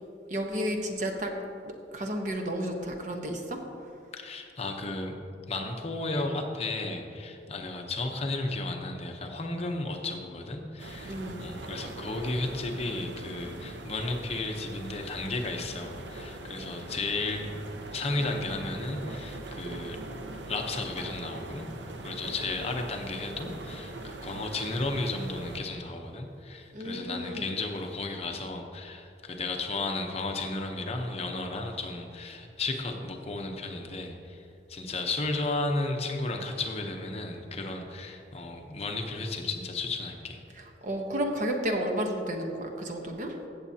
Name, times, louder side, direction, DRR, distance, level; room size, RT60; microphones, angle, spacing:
voice 1, 0.3-1.3 1.9-3.6 11.0-11.5 26.7-27.5 40.6-43.3, equal, 45° right, 3 dB, 1.0 m, -32 dB
voice 2, 4.1-5.2 5.5-17.6 17.9-20.0 20.5-21.7 22.0-34.4 34.7-40.4, left 2 dB, 35° left, 3 dB, 0.8 m, -34 dB
sound 1, 10.8-25.6, right 2 dB, 85° right, 0.7 m, -41 dB
16.0 x 7.3 x 2.8 m, 2.5 s
head